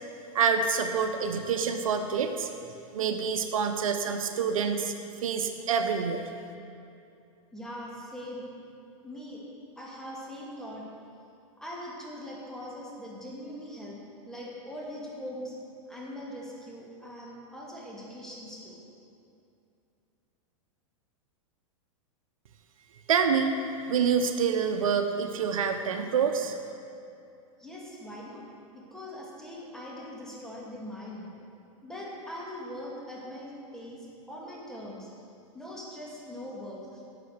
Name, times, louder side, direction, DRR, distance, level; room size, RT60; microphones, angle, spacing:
voice 1, 0.3-2.5 2.9-4.9 5.2-6.2 23.1-23.5 23.9-26.6, right 6 dB, 85° right, 6 dB, 0.9 m, -27 dB
voice 2, 7.5-8.5 9.0-9.5 9.8-10.8 11.6-14.0 14.3-15.5 15.9-18.8 27.6-28.5 28.7-31.3 31.8-35.1 35.5-37.0, equal, 5° left, -5 dB, 2.5 m, -41 dB
11.0 x 6.9 x 6.6 m, 2.6 s
hypercardioid pair, 125°, 17 cm